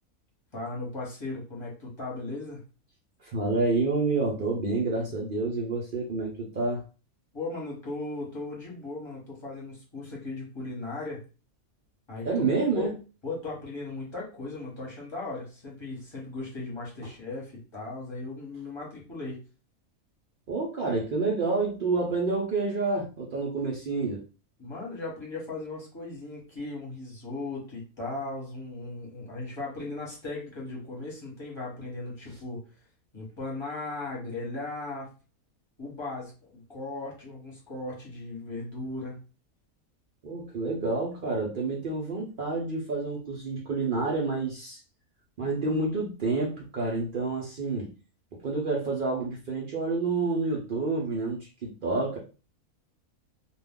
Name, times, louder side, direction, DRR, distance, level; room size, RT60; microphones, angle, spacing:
voice 1, 0.5-2.6 7.3-11.2 12.1-12.9 13.2-19.4 24.6-32.6 33.1-35.1 35.8-39.2, left 2 dB, 20° left, -3 dB, 1.0 m, -37 dB
voice 2, 3.2-6.8 12.3-12.9 20.5-24.2 40.2-44.8 45.4-47.9 48.4-52.2, right 3 dB, 65° right, -2 dB, 0.5 m, -28 dB
2.3 x 2.2 x 3.5 m, 0.35 s
omnidirectional pair, 1.5 m